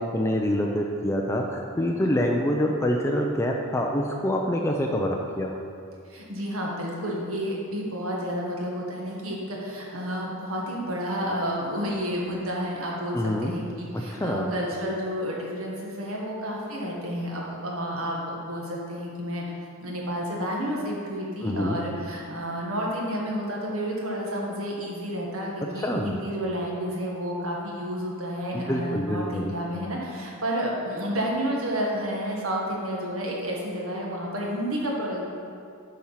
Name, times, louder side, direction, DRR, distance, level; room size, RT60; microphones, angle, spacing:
voice 1, 0.0-5.6 13.1-13.5 13.9-14.5 21.4-21.8 25.8-26.2 28.7-29.5, equal, 15° left, 0 dB, 0.4 m, -26 dB
voice 2, 6.1-19.4 19.8-35.2, equal, 90° right, -2 dB, 1.6 m, -30 dB
8.4 x 4.5 x 5.7 m, 2.4 s
head